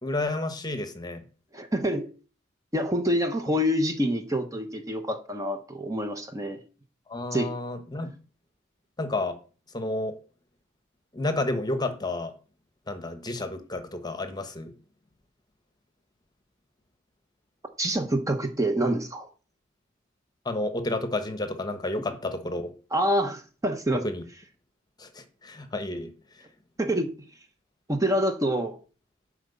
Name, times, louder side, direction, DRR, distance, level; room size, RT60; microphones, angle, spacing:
voice 1, 0.0-1.2 7.1-8.1 9.0-9.4 9.7-10.2 11.1-12.3 12.9-14.7 20.4-22.7 23.9-24.2 25.0-26.1, left 2 dB, 20° left, 8 dB, 1.1 m, -31 dB
voice 2, 1.5-2.1 2.7-6.6 7.3-7.5 17.8-19.3 22.9-24.0 26.8-27.1 27.9-28.8, equal, 15° right, 6 dB, 1.0 m, -26 dB
10.5 x 5.1 x 6.9 m, 0.36 s
head